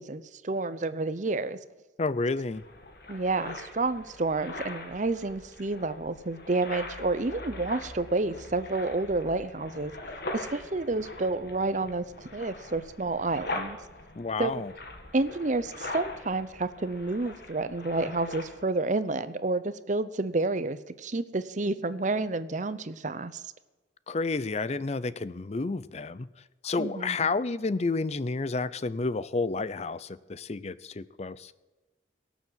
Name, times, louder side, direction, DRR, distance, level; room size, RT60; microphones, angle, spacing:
voice 1, 0.0-1.6 3.1-9.9 10.3-13.8 14.4-14.6 15.1-23.4 26.8-27.3, right 3 dB, 40° right, 14 dB, 0.7 m, -30 dB
voice 2, 2.0-2.6 14.2-14.7 24.1-26.3 26.6-31.5, left 3 dB, 35° left, 16 dB, 0.5 m, -30 dB
sound 1, 2.5-18.6, left 2 dB, 55° left, 2.1 m, -42 dB
17.5 x 7.2 x 7.9 m, 1.2 s
head